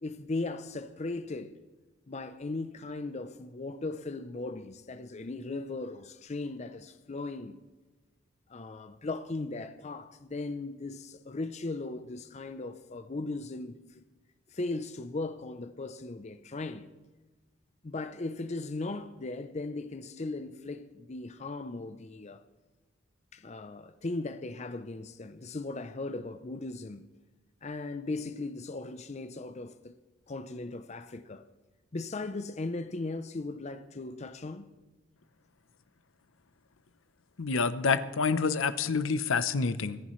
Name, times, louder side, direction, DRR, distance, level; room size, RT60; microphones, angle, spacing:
voice 1, 0.0-1.6 2.1-7.6 8.5-14.0 14.5-16.9 17.8-22.4 23.3-27.1 27.6-29.9 30.3-31.4 31.9-34.7, left 2 dB, 35° left, 0.5 m, -37 dB
voice 2, 37.4-40.0, left 5 dB, 75° left, 0.7 m, -28 dB
24.5 x 9.9 x 3.1 m
head